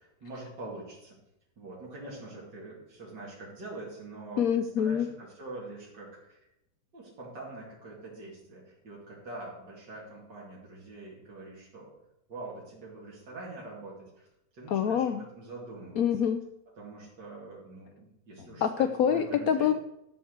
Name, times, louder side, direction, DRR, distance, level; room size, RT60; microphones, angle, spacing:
voice 1, 0.2-1.2 1.6-4.4 4.8-6.4 6.9-11.9 12.3-14.3 14.5-16.0 16.8-19.7, right 2 dB, 80° right, -6 dB, 3.1 m, -44 dB
voice 2, 4.4-5.1 14.7-15.2 16.0-16.4 18.6-19.7, left 8 dB, 70° left, 9 dB, 0.9 m, -26 dB
13.0 x 4.6 x 7.9 m, 0.87 s
omnidirectional pair, 1.9 m